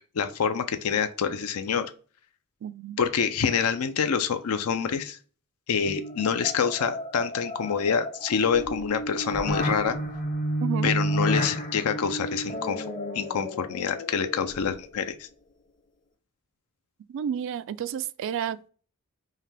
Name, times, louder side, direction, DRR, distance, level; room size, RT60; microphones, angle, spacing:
voice 1, 0.2-1.9 3.0-5.2 5.7-10.0 10.8-12.8 13.1-15.3, left 6 dB, 75° left, 0.5 m, -26 dB
voice 2, 2.6-3.0 10.6-10.9 17.1-18.7, right 8 dB, 60° right, 0.3 m, -31 dB
sound 1, 5.9-15.0, equal, 35° left, 0.8 m, -31 dB
5.5 x 2.2 x 3.3 m
head